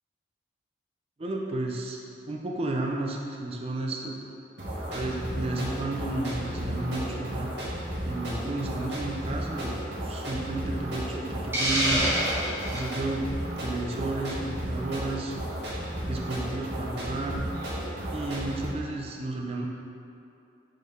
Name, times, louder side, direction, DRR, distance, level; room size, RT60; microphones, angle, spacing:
voice 1, 1.2-2.0 2.3-4.2 4.7-7.5 8.0-9.8 10.0-12.2 12.7-13.3 13.6-15.4 16.1-17.4 18.1-19.7, right 2 dB, 30° right, -1 dB, 0.4 m, -32 dB
sound 1, 4.6-18.6, equal, 65° right, 1.4 m, -34 dB
Hiss, 11.5-12.9, equal, 10° right, 1.2 m, -26 dB
5.4 x 3.8 x 5.2 m, 2.7 s
head